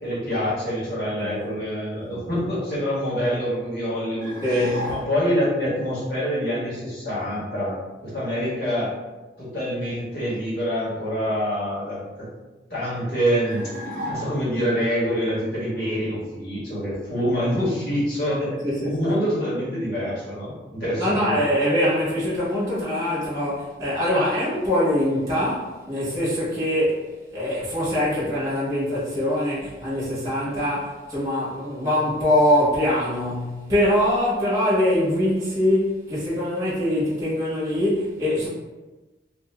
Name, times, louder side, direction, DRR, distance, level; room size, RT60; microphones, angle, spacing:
voice 1, 0.0-8.9 9.4-12.3 12.7-13.6 14.1-18.6 18.8-21.5, equal, 55° left, -9 dB, 1.4 m, -26 dB
sound 1, 4.2-5.4 13.4-14.7, equal, 50° right, 0.7 m, -34 dB
voice 2, 4.4-4.9 18.6-19.0 21.0-27.0 27.3-38.5, left 1 dB, 20° right, -9 dB, 1.1 m, -23 dB
2.7 x 2.5 x 3.3 m, 1.2 s
head